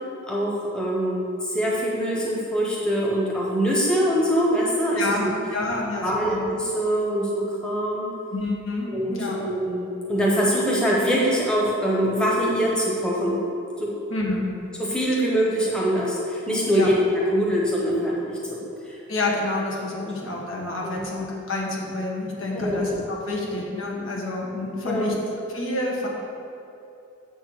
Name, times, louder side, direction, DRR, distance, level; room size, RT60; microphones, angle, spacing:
voice 1, 0.3-5.3 6.0-8.1 8.8-13.4 13.8-13.9 14.8-18.2 18.5-18.6 20.8-21.1 22.5-22.9 24.8-25.2, equal, 5° left, -5 dB, 1.0 m, -23 dB
voice 2, 4.9-6.4 8.3-9.4 14.1-14.5 16.7-16.9 19.1-25.2 25.5-26.1, left 2 dB, 75° left, -2 dB, 1.4 m, -28 dB
7.3 x 4.5 x 6.4 m, 2.7 s
head